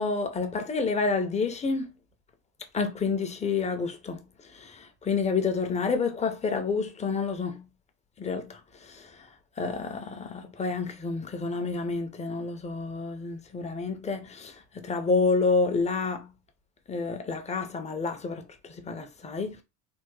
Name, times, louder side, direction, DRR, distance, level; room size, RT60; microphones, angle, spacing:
voice 1, 0.0-1.9 2.7-7.6 8.2-9.3 9.6-16.3 16.9-19.6, left 4 dB, 15° left, 0.5 m, -29 dB
3.4 x 2.0 x 3.1 m
supercardioid pair, 100°, 45 cm